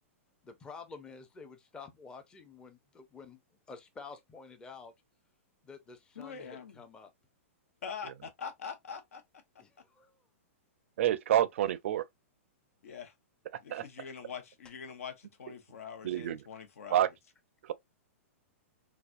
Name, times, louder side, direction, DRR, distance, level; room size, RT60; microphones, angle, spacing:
voice 1, 0.4-3.4 3.7-4.9 5.6-7.1 9.6-10.2, left 4 dB, 10° left, 0.5 m, -49 dB
voice 2, 6.2-6.8 7.8-9.2 12.8-13.1 13.6-17.1, left 6 dB, 85° left, 1.0 m, -44 dB
voice 3, 11.0-12.1 13.7-13.9 16.0-16.4 16.9-17.1 17.6-17.7, right 12 dB, 65° right, 0.4 m, -28 dB
4.0 x 2.3 x 2.4 m
hypercardioid pair, 155°, 7 cm